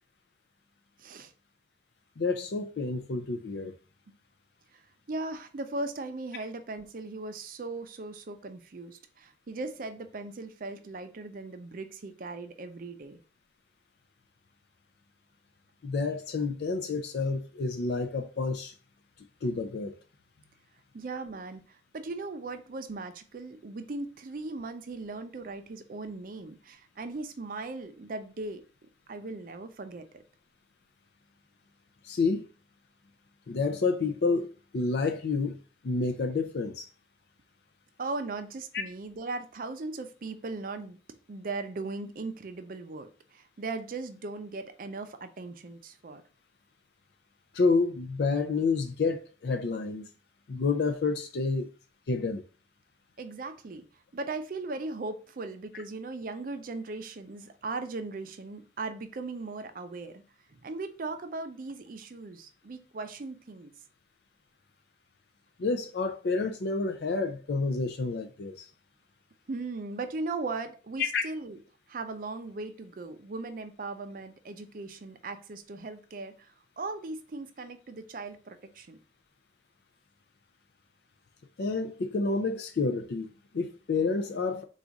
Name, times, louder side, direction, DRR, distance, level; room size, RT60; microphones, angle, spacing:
voice 1, 1.0-1.3 4.7-4.8 5.1-13.2 20.9-28.6 29.1-30.1 38.0-41.0 41.3-46.2 53.2-53.8 54.1-60.2 60.5-63.7 69.5-71.6 71.9-76.5 76.8-79.0, right 3 dB, 50° right, 0.4 m, -38 dB
voice 2, 2.2-3.7 15.8-18.7 19.4-20.0 32.0-32.5 33.5-35.6 35.8-36.9 47.5-50.1 50.5-51.7 52.1-52.4 65.6-68.7 71.0-71.2 81.6-84.6, left 4 dB, 65° left, 0.4 m, -29 dB
4.0 x 2.4 x 4.6 m
head